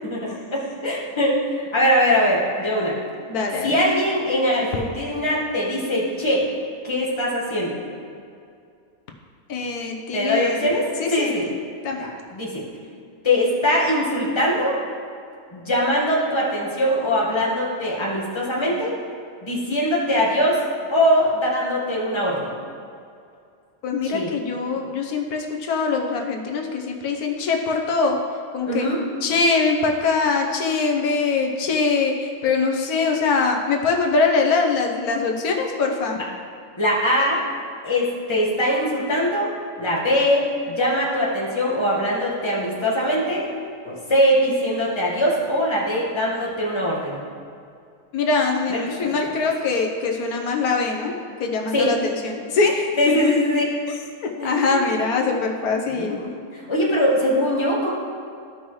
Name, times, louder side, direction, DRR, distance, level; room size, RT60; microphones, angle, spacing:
voice 1, 0.0-3.0 3.6-6.4 6.8-7.7 10.1-11.4 12.0-12.6 13.2-14.8 15.5-19.0 19.4-20.6 20.9-22.5 24.0-24.3 28.6-29.0 36.8-37.4 37.8-39.5 39.8-43.5 43.8-47.2 48.7-49.1 51.7-51.9 53.0-53.6 54.4-54.8 55.9-57.9, equal, 20° left, -5 dB, 1.6 m, -22 dB
voice 2, 3.3-3.8 9.5-10.7 11.0-11.5 11.8-12.1 23.8-28.2 28.5-28.9 29.2-36.2 48.1-51.1 51.4-53.3 54.2-56.2, left 4 dB, 90° left, 2 dB, 1.3 m, -23 dB
14.0 x 5.4 x 3.2 m, 2.4 s
omnidirectional pair, 1.5 m